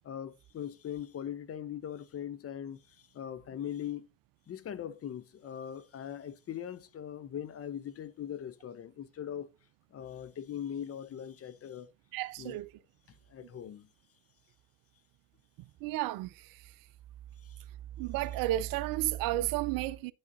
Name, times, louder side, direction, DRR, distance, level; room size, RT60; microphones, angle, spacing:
voice 1, 0.0-2.8 3.1-4.1 4.5-9.5 9.9-11.9 12.4-12.6 13.3-13.9, left 9 dB, 30° left, 0.9 m, -40 dB
voice 2, 12.1-12.7 15.8-16.6 18.0-20.1, right 15 dB, 50° right, 0.7 m, -32 dB
9.6 x 7.1 x 2.5 m
hypercardioid pair, 65°, 43 cm